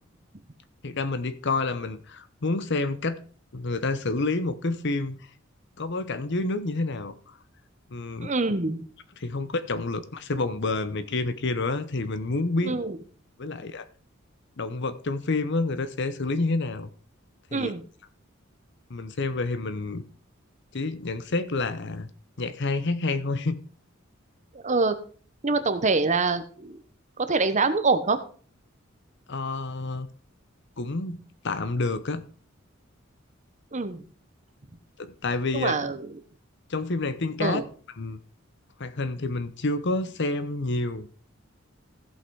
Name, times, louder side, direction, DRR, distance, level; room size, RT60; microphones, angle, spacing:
voice 1, 0.8-3.2 3.5-5.2 5.8-7.1 7.9-8.3 9.2-12.8 13.4-13.9 14.6-16.9 17.5-17.7 18.9-20.0 20.7-22.1 22.4-23.6 29.3-30.1 30.8-32.2 35.0-35.7 36.7-37.6 38.0-38.2 38.8-41.1, left 3 dB, 60° left, 0.9 m, -28 dB
voice 2, 8.2-8.8 12.6-13.0 17.5-17.8 24.6-25.0 25.4-26.8 27.2-28.2 33.7-34.0 35.5-36.0 37.4-37.6, right 3 dB, 35° right, 1.0 m, -25 dB
15.0 x 5.6 x 4.7 m
head